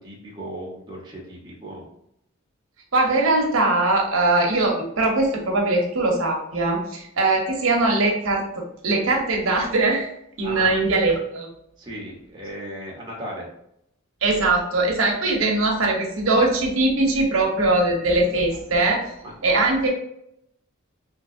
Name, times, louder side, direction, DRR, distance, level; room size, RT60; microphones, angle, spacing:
voice 1, 0.0-1.8 10.4-10.7 11.8-13.5 19.2-19.3, right 1 dB, 20° right, -4 dB, 0.8 m, -36 dB
voice 2, 2.9-8.4 8.8-10.1 10.4-11.5 14.2-19.0 19.4-19.9, right 2 dB, 80° right, 0 dB, 0.8 m, -21 dB
3.3 x 2.8 x 2.5 m, 0.75 s
head